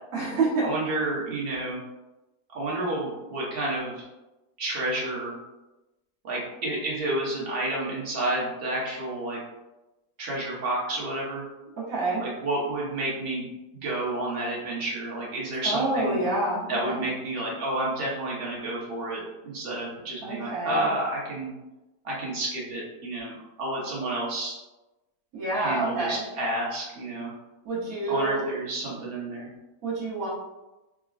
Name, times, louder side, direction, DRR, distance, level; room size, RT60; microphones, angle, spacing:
voice 1, 0.1-0.7 11.8-12.2 15.6-17.0 20.2-20.9 25.3-26.2 27.6-28.5 29.8-30.3, right 2 dB, 65° right, -6 dB, 1.3 m, -28 dB
voice 2, 0.6-1.8 2.5-4.0 4.6-5.3 6.2-9.4 10.2-11.4 12.2-13.5 13.7-16.2 16.7-21.5 22.0-24.6 25.5-27.3 28.1-29.5, right 1 dB, 45° right, -5 dB, 1.0 m, -30 dB
4.9 x 2.1 x 2.4 m, 1.0 s
omnidirectional pair, 1.7 m